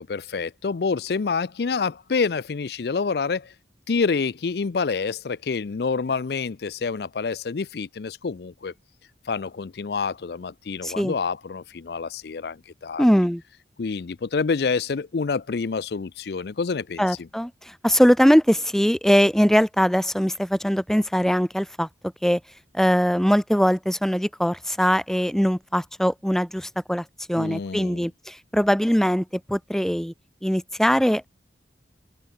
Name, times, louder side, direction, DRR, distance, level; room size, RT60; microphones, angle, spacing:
voice 1, 0.0-3.5 3.9-8.7 9.3-13.0 13.8-17.0 27.4-28.0, left 5 dB, 65° left, 0.5 m, -27 dB
voice 2, 10.8-11.2 13.0-13.4 17.0-21.9 22.2-22.4 22.7-30.1 30.4-31.3, equal, ahead, 1.0 m, -21 dB
open air
head